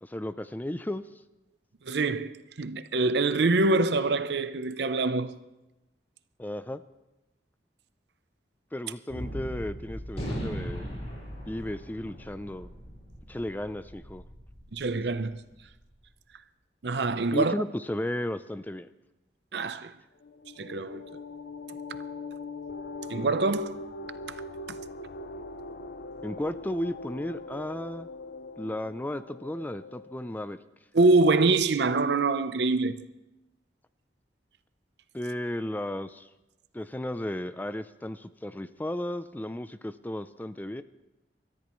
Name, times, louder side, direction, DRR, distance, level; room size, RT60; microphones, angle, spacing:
voice 1, 0.0-1.0 6.4-6.8 8.7-10.9 11.4-12.7 13.3-14.2 17.3-18.9 26.2-28.1 28.6-30.6 35.1-36.3 36.7-40.8, left 1 dB, 10° left, 0.4 m, -34 dB
voice 2, 1.8-5.4 14.7-15.4 16.8-17.5 19.5-19.9 20.6-21.2 23.1-23.8 24.7-24.8 30.9-33.1, right 3 dB, 65° right, 0.6 m, -25 dB
Gunshot gunfire, 9.1-15.7, equal, 35° left, 5.1 m, -39 dB
sound 1, 20.2-30.4, left 3 dB, 60° left, 0.6 m, -41 dB
26.5 x 13.5 x 3.1 m
head